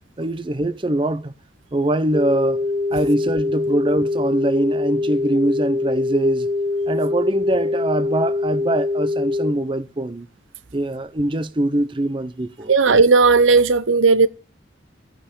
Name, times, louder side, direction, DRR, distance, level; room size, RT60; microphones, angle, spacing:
voice 1, 0.2-1.3 1.7-2.6 2.9-6.5 6.9-10.3 10.7-12.7, right 1 dB, 25° right, 0.6 m, -23 dB
sound 1, 2.1-9.5, left 2 dB, 55° right, 1.6 m, -23 dB
voice 2, 12.7-14.3, right 4 dB, 80° right, 0.8 m, -14 dB
14.5 x 5.6 x 8.8 m
head